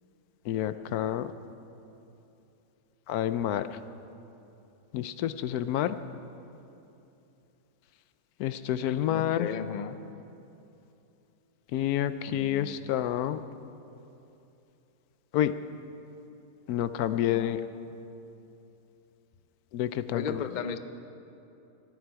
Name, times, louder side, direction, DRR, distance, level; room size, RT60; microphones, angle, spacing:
voice 1, 0.5-1.3 3.1-3.7 4.9-6.0 8.4-9.5 11.7-13.4 15.3-15.5 16.7-17.6 19.7-20.4, left 11 dB, 80° left, 12 dB, 1.1 m, -28 dB
voice 2, 9.1-10.0 12.3-12.9 17.0-17.9 20.1-20.8, left 6 dB, 65° left, 10 dB, 0.4 m, -36 dB
24.0 x 9.6 x 4.7 m, 2.8 s
omnidirectional pair, 1.6 m